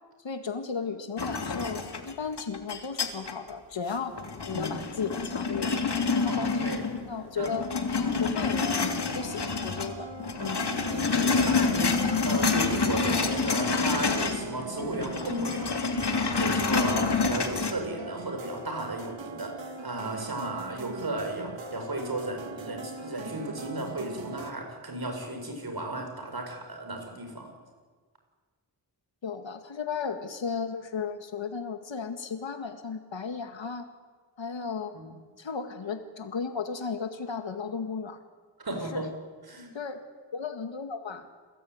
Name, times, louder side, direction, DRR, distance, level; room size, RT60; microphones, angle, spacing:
voice 1, 0.2-4.2 4.5-5.7 6.3-6.6 7.1-7.7 8.2-10.1 10.4-10.7 18.0-18.1 29.2-33.9 34.4-35.0 35.4-38.2 38.9-39.0 39.7-40.0 40.3-41.3, left 5 dB, 85° left, 7 dB, 2.0 m, -35 dB
sound 1, 1.2-3.5 3.9-7.1 7.4-9.9 10.2-14.5 14.7-17.7, left 4 dB, 60° left, 3.1 m, -28 dB
voice 2, 4.5-4.9 6.3-6.9 7.4-7.5 8.0-8.2 10.9-15.8 16.4-27.5 34.9-35.1 38.6-39.1 39.4-39.7, right 1 dB, 55° right, 4 dB, 7.6 m, -34 dB
sound 2, 8.8-24.5, right 4 dB, 85° right, 2.3 m, -41 dB
sound 3, 11.4-12.5, equal, ahead, 2.7 m, -45 dB
28.5 x 21.0 x 9.6 m, 1.5 s
wide cardioid pair, 85°, 44 cm